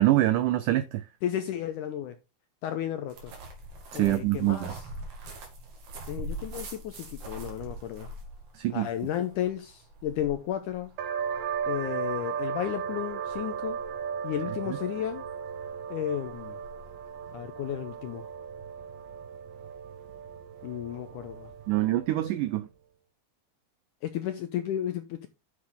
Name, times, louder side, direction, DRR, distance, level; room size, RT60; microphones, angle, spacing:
voice 1, 0.0-1.0 3.9-4.7 8.5-8.9 21.7-22.7, right 15 dB, 90° right, 1.8 m, -25 dB
voice 2, 1.2-2.2 2.6-3.3 3.9-4.8 6.1-8.1 8.7-10.9 11.7-13.8 14.2-15.2 15.9-16.6 17.3-18.3 20.6-21.5 24.0-25.3, left 11 dB, 80° left, 1.8 m, -33 dB
sound 1, 3.1-18.3, right 1 dB, 50° right, 3.5 m, -44 dB
sound 2, 11.0-22.3, right 7 dB, 70° right, 2.4 m, -36 dB
9.7 x 6.5 x 3.6 m
omnidirectional pair, 4.5 m